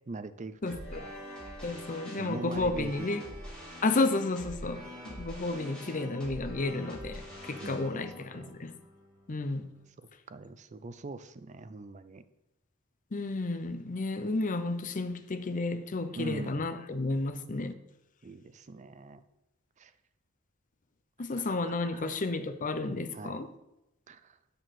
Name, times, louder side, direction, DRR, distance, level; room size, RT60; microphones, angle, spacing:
voice 1, 0.1-1.1 2.2-3.4 7.6-8.0 8.3-8.6 10.0-12.2 16.2-16.8 18.2-19.2 19.8-19.9 21.3-22.2 23.1-23.4 24.1-24.4, right 3 dB, 35° right, 0.5 m, -43 dB
voice 2, 0.6-1.0 1.6-3.2 3.8-8.7 9.3-9.7 13.1-17.7 21.2-23.5, left 2 dB, 40° left, 0.6 m, -32 dB
sound 1, 0.7-9.8, equal, 5° left, 3.7 m, -44 dB
6.7 x 6.2 x 6.3 m
head